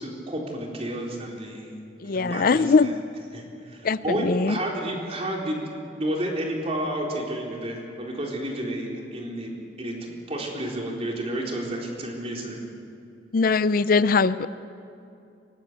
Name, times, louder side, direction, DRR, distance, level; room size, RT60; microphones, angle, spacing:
voice 1, 0.0-2.6 3.3-5.6 6.0-9.5 9.8-12.6, right 1 dB, 35° right, -1 dB, 4.2 m, -31 dB
voice 2, 2.0-3.0 3.8-4.6 13.3-14.5, left 4 dB, 55° left, 15 dB, 0.5 m, -21 dB
23.5 x 19.5 x 8.1 m, 2.6 s
head